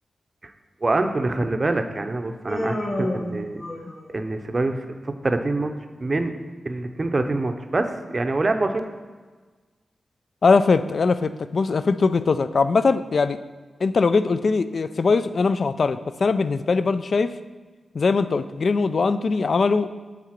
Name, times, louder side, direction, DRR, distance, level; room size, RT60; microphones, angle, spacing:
voice 1, 0.8-3.6 4.1-5.7 6.0-6.3 6.6-8.8, right 2 dB, 35° right, 6 dB, 0.6 m, -25 dB
Human voice, 2.5-4.2, left 1 dB, 35° left, 1.3 m, -29 dB
voice 2, 10.4-13.4 13.8-17.3 17.9-19.9, left 4 dB, 60° left, 13 dB, 0.3 m, -21 dB
7.4 x 3.9 x 5.8 m, 1.4 s
wide cardioid pair, 85°, 0 cm